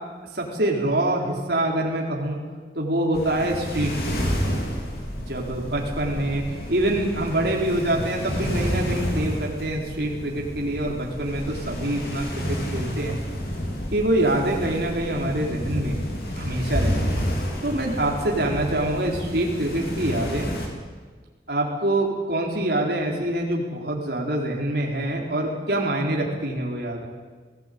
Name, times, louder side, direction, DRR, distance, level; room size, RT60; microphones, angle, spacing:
voice 1, 0.3-2.4 2.8-4.3 5.3-13.2 13.9-16.0 16.4-17.3 17.6-20.5 21.5-27.1, right 1 dB, 65° right, -1 dB, 4.1 m, -25 dB
sound 1, 3.1-20.7, equal, 55° left, 4.2 m, -30 dB
19.5 x 17.0 x 9.4 m, 1.4 s
head